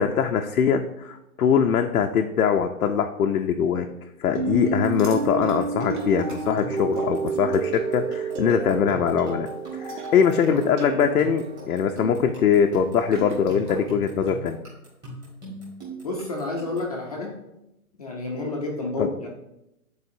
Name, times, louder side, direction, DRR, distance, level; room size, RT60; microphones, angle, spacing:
voice 1, 0.0-3.9 4.2-9.5 9.7-14.6 19.0-19.1, left 7 dB, 80° left, 3 dB, 0.6 m, -22 dB
sound 1, 4.4-11.7, right 4 dB, 55° right, 0.6 m, -30 dB
sound 2, 4.7-17.0, right 1 dB, 10° right, 1.6 m, -40 dB
sound 3, 4.9-7.8 8.1-8.4 9.6-14.0, right 2 dB, 35° right, 1.1 m, -44 dB
voice 2, 16.0-17.4 18.0-19.3, left 2 dB, 25° left, -1 dB, 0.6 m, -30 dB
9.6 x 4.1 x 2.7 m, 0.89 s
hypercardioid pair, 165°, 44 cm